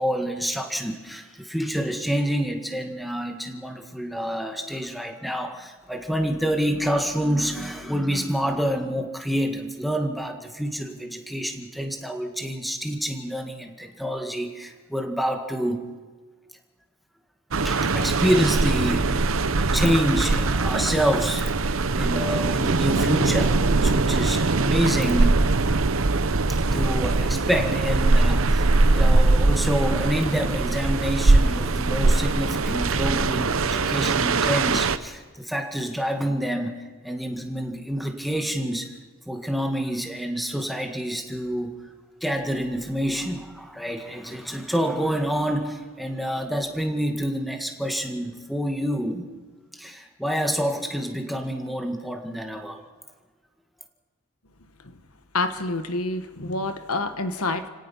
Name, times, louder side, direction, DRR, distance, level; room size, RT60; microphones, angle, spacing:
voice 1, 0.0-15.9 17.6-19.3 19.6-25.4 26.5-38.9 39.3-41.8 42.2-49.3 49.7-52.8, equal, ahead, 3 dB, 1.8 m, -27 dB
sound 1, 17.5-35.0, right 3 dB, 65° right, 0.8 m, -21 dB
voice 2, 55.3-57.7, left 2 dB, 80° left, 9 dB, 1.4 m, -27 dB
29.5 x 17.5 x 5.6 m, 1.4 s
head